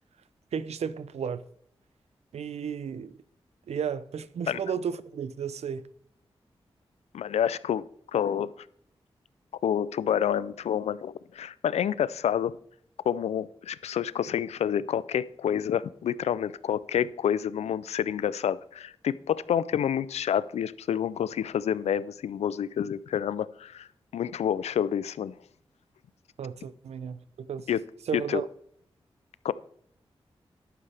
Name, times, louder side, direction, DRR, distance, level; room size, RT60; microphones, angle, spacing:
voice 1, 0.5-1.5 2.3-3.2 3.7-5.9 26.4-27.7 28.1-28.5, right 7 dB, 80° right, 0.6 m, -33 dB
voice 2, 7.1-7.9 8.1-8.5 9.6-12.5 13.1-23.9 24.1-25.3 27.7-27.8 28.1-28.4 29.4-29.5, left 9 dB, 85° left, 0.4 m, -28 dB
11.0 x 8.8 x 3.4 m
cardioid pair, 40°, 11 cm